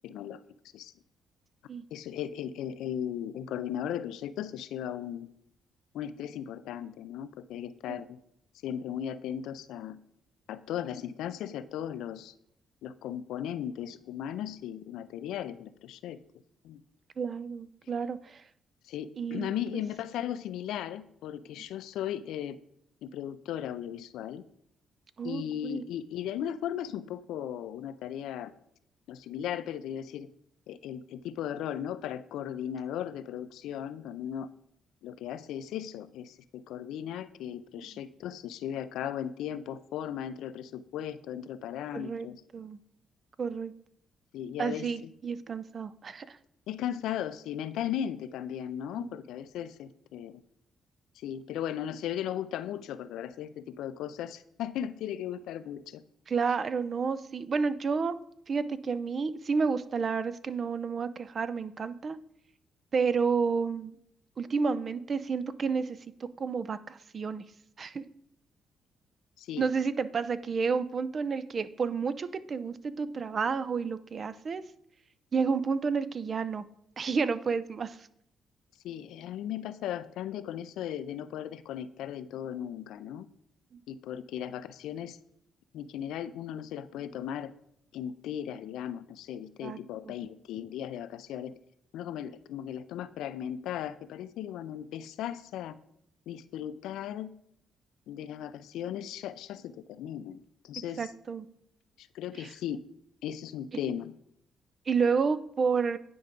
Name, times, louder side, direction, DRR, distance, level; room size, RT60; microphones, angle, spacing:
voice 1, 0.0-0.4 0.7-0.9 1.9-5.3 5.9-8.2 8.6-10.0 10.5-12.3 12.8-16.2 16.6-16.8 18.8-22.6 23.0-24.4 25.2-28.5 29.1-30.3 30.7-34.5 35.0-42.4 44.3-45.1 46.7-50.4 51.2-56.0 69.4-69.7 78.8-83.3 83.9-85.2 85.7-87.5 87.9-91.5 91.9-95.8 96.3-97.3 98.1-101.1 102.0-102.8 103.2-104.1, left 10 dB, 85° left, 13 dB, 0.4 m, -37 dB
voice 2, 17.2-18.4 19.2-19.6 25.2-25.8 41.9-42.3 42.5-42.8 43.4-43.7 44.6-46.4 49.0-49.1 56.3-58.2 58.5-62.2 62.9-64.0 64.4-67.4 67.8-68.0 69.6-74.6 75.3-76.6 77.0-78.0 89.6-89.8 90.0-90.1 101.0-101.5 102.4-102.5 104.9-106.0, right 5 dB, 45° right, 15 dB, 0.5 m, -30 dB
9.8 x 4.7 x 5.2 m, 0.74 s
cardioid pair, 90°, 0 cm